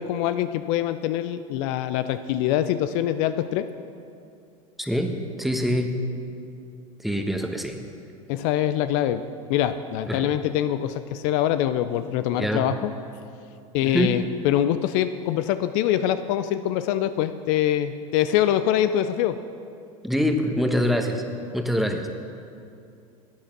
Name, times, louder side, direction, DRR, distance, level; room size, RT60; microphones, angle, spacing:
voice 1, 0.0-3.7 8.3-12.9 13.7-19.4, left 11 dB, 60° left, 12 dB, 0.5 m, -24 dB
voice 2, 4.8-6.0 7.0-7.7 10.1-10.3 12.3-12.7 13.8-14.1 20.0-21.2 21.5-22.1, equal, ahead, 4 dB, 1.1 m, -25 dB
12.0 x 8.7 x 6.0 m, 2.5 s
hypercardioid pair, 85°, 18 cm